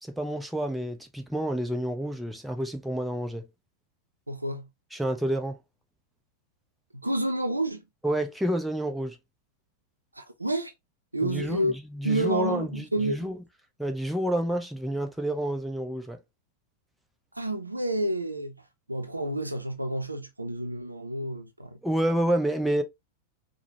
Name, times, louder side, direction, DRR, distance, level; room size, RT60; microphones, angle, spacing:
voice 1, 0.0-3.5 4.9-5.6 8.0-9.2 11.2-13.4 13.8-16.2 21.8-22.8, right 1 dB, ahead, 0.7 m, -29 dB
voice 2, 4.3-4.7 6.9-7.8 10.1-10.7 11.1-11.7 12.0-13.3 17.3-18.6 18.9-21.8, right 1 dB, 85° right, 0.6 m, -29 dB
4.8 x 2.2 x 2.9 m
figure-of-eight pair, 90°, 0 cm